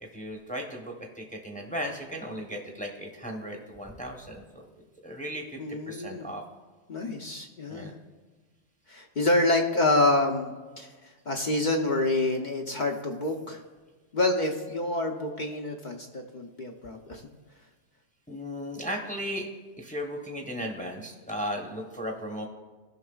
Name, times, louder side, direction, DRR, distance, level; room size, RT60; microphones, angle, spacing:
voice 1, 0.0-4.4 5.0-5.6 5.8-6.4 7.7-7.9 18.3-19.5 19.8-22.5, equal, 5° left, 1 dB, 0.9 m, -36 dB
voice 2, 5.6-6.3 6.9-7.9 8.9-10.5 10.8-10.9 11.3-13.6 14.1-17.2, left 2 dB, 45° left, 2 dB, 0.8 m, -27 dB
17.0 x 5.8 x 2.4 m, 1.3 s
omnidirectional pair, 1.2 m